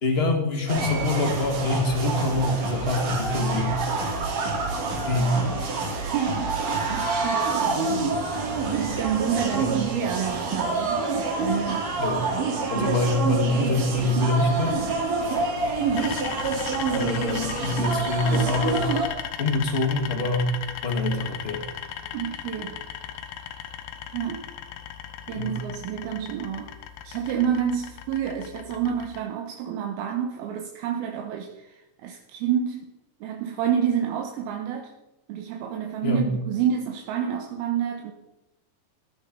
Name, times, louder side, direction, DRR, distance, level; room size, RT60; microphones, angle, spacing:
voice 1, 0.0-3.8 5.0-5.4 9.5-9.7 12.0-12.3 12.7-14.8 16.9-18.9 19.4-20.5 20.8-21.6 25.3-25.6 36.0-36.3, left 2 dB, 25° left, 3 dB, 1.4 m, -25 dB
sound 1, 0.7-19.1, right 4 dB, 55° right, 4.1 m, -27 dB
voice 2, 6.0-8.1 8.7-11.9 12.7-12.9 22.1-22.8 24.1-24.5 25.3-26.7 27.0-32.9 33.2-34.9 35.3-38.1, right 8 dB, 80° right, 3 dB, 3.0 m, -29 dB
sound 2, 16.0-29.2, left 9 dB, 75° left, 2.8 m, -37 dB
15.0 x 13.5 x 5.4 m, 0.94 s
omnidirectional pair, 4.5 m